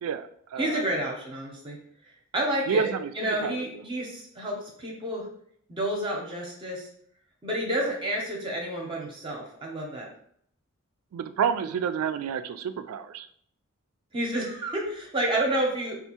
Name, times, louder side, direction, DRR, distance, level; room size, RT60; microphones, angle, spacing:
voice 1, 0.0-0.8 2.7-3.1 3.4-3.6 11.1-13.3, right 6 dB, 80° right, 10 dB, 0.3 m, -29 dB
voice 2, 0.6-1.8 2.3-2.9 3.1-5.3 5.7-6.9 7.4-10.1 14.1-16.0, right 1 dB, 25° right, -1 dB, 0.6 m, -30 dB
4.5 x 2.4 x 2.8 m, 0.65 s
head